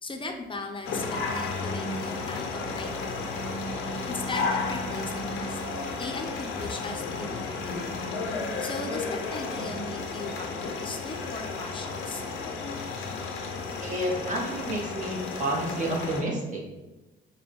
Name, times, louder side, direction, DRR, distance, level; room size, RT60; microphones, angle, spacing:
voice 1, 0.0-3.5 4.1-5.6 6.0-8.1 8.6-12.2, left 2 dB, 25° left, 4 dB, 0.6 m, -38 dB
sound 1, 0.8-16.2, left 3 dB, 85° left, 0.6 m, -33 dB
voice 2, 13.8-16.6, right 1 dB, 40° right, -2 dB, 1.1 m, -30 dB
5.1 x 2.2 x 3.0 m, 1.1 s
cardioid pair, 90°, 20 cm